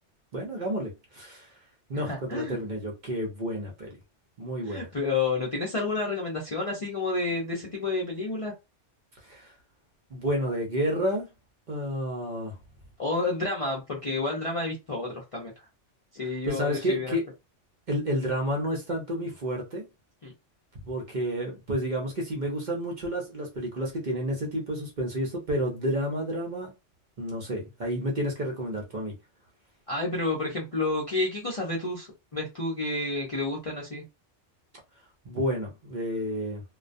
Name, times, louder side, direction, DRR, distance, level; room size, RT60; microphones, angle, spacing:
voice 1, 0.3-1.5 1.9-3.9 4.4-4.9 9.2-9.5 10.1-11.3 11.7-12.6 16.2-17.2 17.9-19.9 20.7-26.7 27.2-29.1 35.2-36.6, equal, 45° right, 0.7 m, -30 dB
voice 2, 1.9-2.6 4.7-8.5 13.0-15.5 16.1-17.1 20.2-20.3 29.9-34.0, left 3 dB, 40° left, 0.5 m, -30 dB
2.3 x 2.2 x 2.5 m
omnidirectional pair, 1.2 m